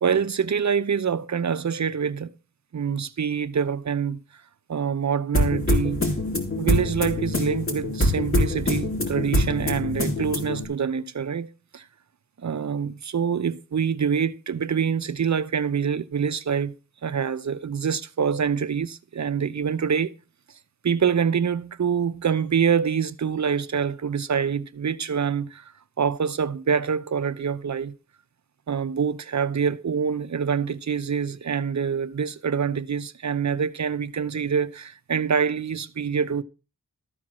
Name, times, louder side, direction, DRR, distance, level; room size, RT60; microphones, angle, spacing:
voice 1, 0.0-2.3 2.7-4.2 4.7-6.0 6.6-11.8 12.4-16.8 17.0-20.1 20.8-25.7 26.0-28.0 28.7-36.4, right 7 dB, 55° right, 0.7 m, -25 dB
sound 1, 5.3-10.7, left 1 dB, 40° left, 3.5 m, -24 dB
13.5 x 4.6 x 7.4 m
wide cardioid pair, 60°, 33 cm